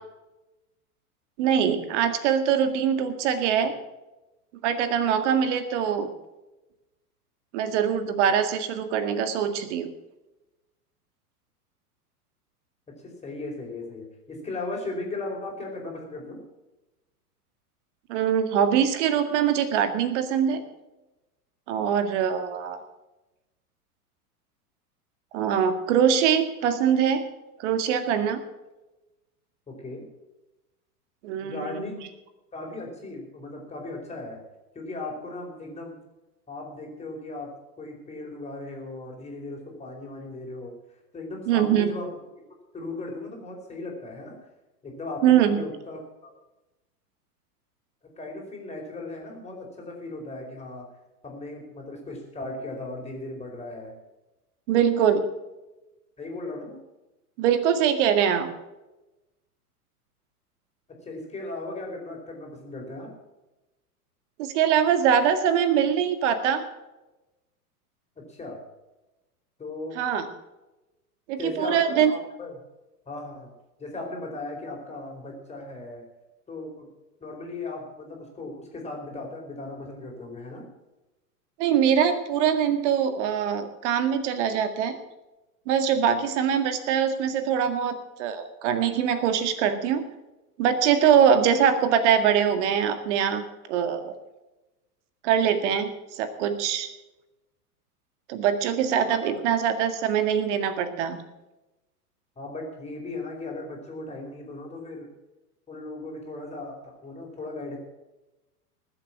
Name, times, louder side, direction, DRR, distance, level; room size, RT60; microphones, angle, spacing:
voice 1, 1.4-3.7 4.6-6.1 7.5-9.9 18.1-20.6 21.7-22.8 25.3-27.3 27.6-28.4 31.2-32.0 41.5-41.9 45.2-45.6 54.7-55.2 57.4-58.5 64.4-66.6 70.0-70.3 71.3-72.1 81.6-85.0 85.7-90.0 90.6-94.1 95.2-96.9 98.3-101.2, right 8 dB, 50° right, 9 dB, 2.0 m, -23 dB
voice 2, 13.0-16.4 29.7-30.0 31.4-32.0 32.5-34.4 34.7-36.0 36.5-40.7 41.1-42.1 42.7-44.4 44.8-46.3 48.2-50.9 51.2-53.9 56.2-56.8 61.0-63.1 68.3-68.6 69.6-70.0 71.4-72.5 73.1-73.5 73.8-76.0 76.5-76.9 77.2-80.7 99.1-99.4 102.4-105.1 105.7-107.8, left 2 dB, 15° left, 0 dB, 4.7 m, -37 dB
19.5 x 7.9 x 6.1 m, 1.0 s
figure-of-eight pair, 100°, 46 cm